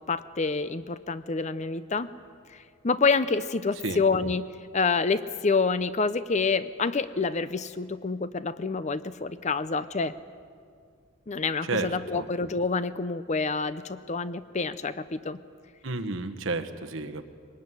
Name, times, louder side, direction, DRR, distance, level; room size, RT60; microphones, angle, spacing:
voice 1, 0.0-2.1 2.5-4.5 4.7-10.2 11.3-15.4, left 4 dB, 35° left, 14 dB, 0.6 m, -27 dB
voice 2, 11.6-12.3 15.8-17.2, right 3 dB, 65° right, 6 dB, 1.4 m, -31 dB
23.0 x 19.5 x 9.6 m, 2.2 s
head